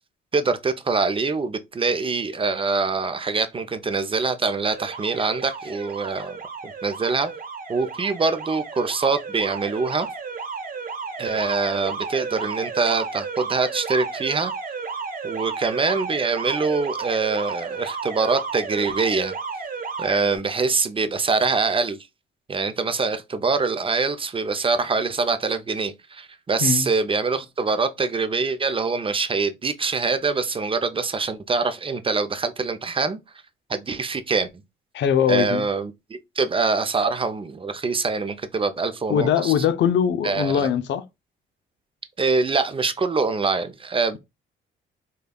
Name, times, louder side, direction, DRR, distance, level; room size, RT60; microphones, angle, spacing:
voice 1, 0.3-6.4 6.8-7.3 7.7-10.1 11.2-14.5 15.2-19.3 20.0-22.0 22.5-33.2 33.7-34.5 35.3-39.5 40.2-40.7 42.2-44.2, right 4 dB, 25° right, 0.5 m, -24 dB
Alarm, 4.7-20.4, right 5 dB, 45° right, 1.0 m, -33 dB
voice 2, 34.9-35.6 39.1-41.0, left 8 dB, 65° left, 0.5 m, -21 dB
5.1 x 2.3 x 2.2 m
cardioid pair, 90°, 20 cm